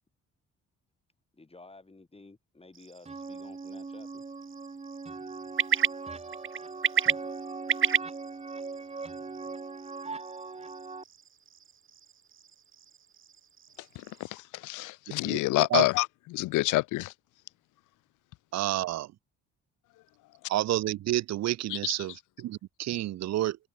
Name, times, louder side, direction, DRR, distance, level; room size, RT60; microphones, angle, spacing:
voice 1, 1.3-4.2, left 3 dB, 20° left, 5.9 m, -52 dB
sound 1, 2.7-14.4, right 8 dB, 40° right, 1.3 m, -34 dB
sound 2, 3.1-11.0, right 4 dB, 20° right, 1.2 m, -40 dB
voice 2, 14.0-17.1 21.7-21.9, left 19 dB, 85° left, 0.6 m, -28 dB
voice 3, 18.5-19.1 20.5-23.6, right 14 dB, 60° right, 0.6 m, -29 dB
cardioid pair, 90°, 30 cm